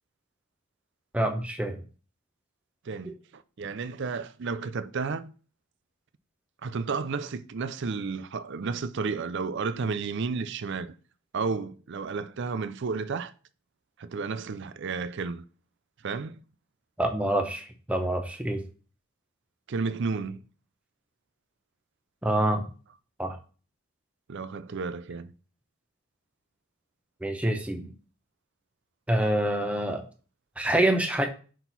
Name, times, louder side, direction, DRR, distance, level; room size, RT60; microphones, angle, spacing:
voice 1, 1.1-1.8 3.1-3.2 17.0-18.6 22.2-22.6 23.2-23.4 27.2-27.9 29.1-30.0 30.6-31.3, right 1 dB, 5° right, 0.7 m, -26 dB
voice 2, 2.9-5.3 6.6-10.9 11.3-13.3 14.0-15.4 16.0-16.4 19.7-20.4 24.3-25.3, right 4 dB, 50° right, 0.4 m, -32 dB
6.0 x 4.5 x 4.0 m
head